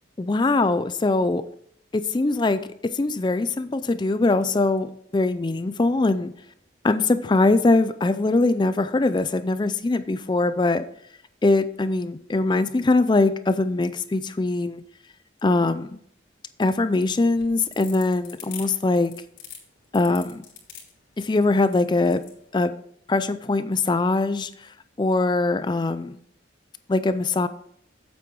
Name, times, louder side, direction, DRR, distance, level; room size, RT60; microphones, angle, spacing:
voice 1, 0.2-1.4 1.9-6.3 6.8-10.8 11.4-14.8 15.4-16.0 16.6-19.1 19.9-20.4 21.2-22.2 22.5-22.7 23.1-26.2 26.9-27.5, left 2 dB, 25° left, 13 dB, 0.4 m, -22 dB
sound 1, 17.4-22.4, left 8 dB, 80° left, 3.2 m, -42 dB
8.8 x 7.7 x 4.6 m, 0.67 s
head